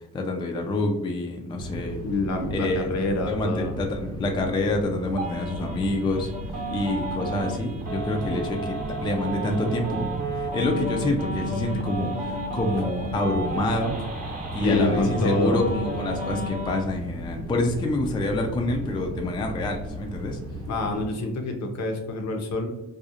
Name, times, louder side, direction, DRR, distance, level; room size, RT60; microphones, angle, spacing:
voice 1, 0.0-2.0 2.5-2.9 3.3-6.3 6.7-8.7 9.0-14.0 14.5-20.4, left 2 dB, 15° left, 2 dB, 0.3 m, -27 dB
sound 1, 1.6-21.1, right 1 dB, 60° right, 0.7 m, -36 dB
voice 2, 2.0-3.7 14.6-15.6 20.7-22.7, left 2 dB, 60° left, 4 dB, 0.6 m, -26 dB
sound 2, 5.2-16.8, right 1 dB, 30° right, 0.8 m, -33 dB
2.4 x 2.0 x 2.7 m, 0.93 s
cardioid pair, 90°, 30 cm